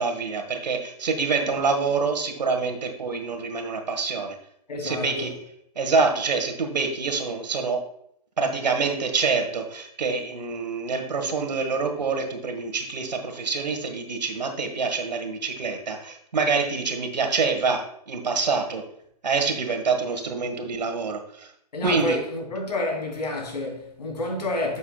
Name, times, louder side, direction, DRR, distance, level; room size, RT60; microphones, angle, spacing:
voice 1, 0.0-4.4 4.8-5.3 5.7-7.8 8.4-18.8 19.2-21.5 21.8-22.2, right 4 dB, 85° right, 1.5 m, -26 dB
voice 2, 4.7-5.3 21.7-24.8, left 2 dB, 80° left, 2.7 m, -29 dB
8.4 x 7.2 x 2.3 m
hypercardioid pair, 140°, 21 cm